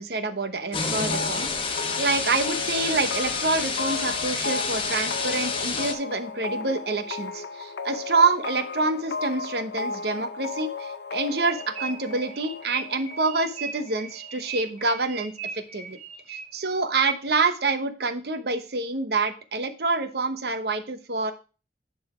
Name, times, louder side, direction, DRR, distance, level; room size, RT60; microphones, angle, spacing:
voice 1, 0.0-16.0 16.3-21.3, right 3 dB, 60° right, 9 dB, 1.0 m, -27 dB
sound 1, 0.7-5.9, left 4 dB, 30° left, 1.0 m, -29 dB
sound 2, 1.1-14.6, left 4 dB, 80° left, 0.7 m, -35 dB
sound 3, 11.4-16.7, right 5 dB, 35° right, 1.2 m, -38 dB
10.5 x 4.0 x 4.9 m, 0.33 s
head